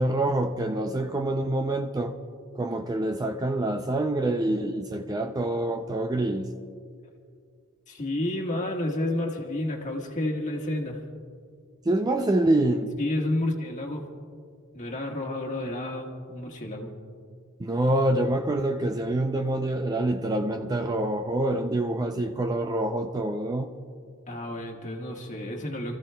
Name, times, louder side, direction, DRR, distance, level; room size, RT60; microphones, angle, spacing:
voice 1, 0.0-2.2 2.6-6.5 11.9-13.0 17.6-23.7, right 1 dB, 20° right, 0.4 m, -26 dB
voice 2, 7.9-11.0 13.0-14.0 14.7-16.9 24.3-26.0, left 1 dB, 35° left, 1.5 m, -30 dB
29.5 x 14.5 x 2.2 m
head